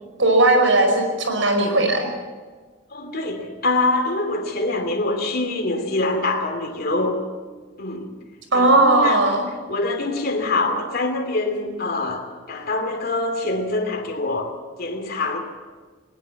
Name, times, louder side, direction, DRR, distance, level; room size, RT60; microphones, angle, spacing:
voice 1, 0.2-2.1 8.5-9.4, right 2 dB, 90° right, 5 dB, 5.2 m, -17 dB
voice 2, 2.9-7.2 7.8-8.2 8.5-9.2 9.7-14.5 14.8-15.4, left 2 dB, 55° left, 3 dB, 2.7 m, -24 dB
20.5 x 19.5 x 7.1 m, 1.4 s
head